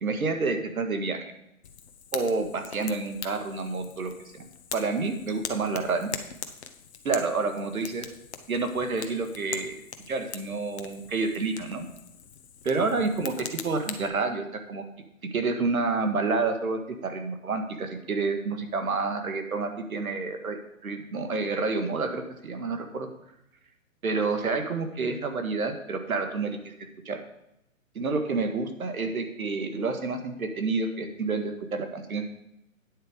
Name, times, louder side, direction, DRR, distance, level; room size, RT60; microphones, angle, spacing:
voice 1, 0.0-1.3 2.1-4.5 4.7-6.2 7.0-8.1 8.5-9.8 10.1-11.9 12.6-14.8 15.2-20.6 20.8-23.1 24.0-26.7 27.1-27.2 28.0-32.3, right 3 dB, 80° right, 6 dB, 1.8 m, -29 dB
Fire, 1.6-14.1, left 7 dB, 50° left, 1.1 m, -41 dB
9.6 x 7.4 x 5.0 m, 0.84 s
hypercardioid pair, 150°, 42 cm